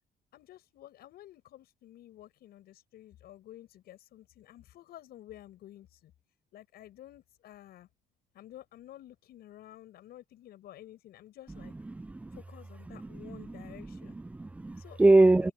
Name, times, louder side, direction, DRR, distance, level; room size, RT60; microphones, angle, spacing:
voice 1, 0.3-6.1 6.5-7.9 8.3-11.7 12.3-14.2 14.8-15.5, left 13 dB, 70° left, 7.2 m, -51 dB
voice 2, 11.6-12.4 12.9-15.5, right 2 dB, 10° right, 0.3 m, -26 dB
cardioid pair, 110°, 17 cm